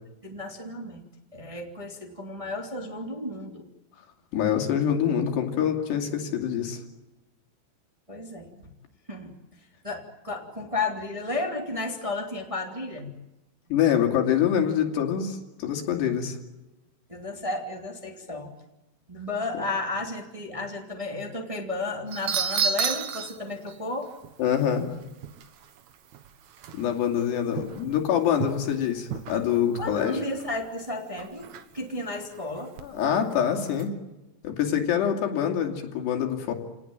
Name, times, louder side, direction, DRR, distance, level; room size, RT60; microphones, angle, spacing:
voice 1, 0.2-1.0 1.3-3.7 8.1-8.5 9.1-9.3 9.8-13.1 17.1-18.5 19.1-24.1 29.8-31.5 31.7-32.7, left 2 dB, 10° right, 2 dB, 2.1 m, -33 dB
voice 2, 4.3-6.8 13.7-16.4 24.4-24.9 26.7-30.2 32.8-34.0 34.4-36.5, left 9 dB, 80° left, 4 dB, 4.8 m, -25 dB
sound 1, 22.1-23.4 23.7-23.8 24.2-24.3 24.8-25.9 26.1-26.3 26.6-27.2 27.5-28.0 28.3-28.7 29.1-30.0 30.3-30.5 31.2-31.8 32.3-32.8 33.7-33.8, right 7 dB, 60° right, 2.2 m, -31 dB
29.5 x 19.0 x 9.0 m, 1.0 s
omnidirectional pair, 4.8 m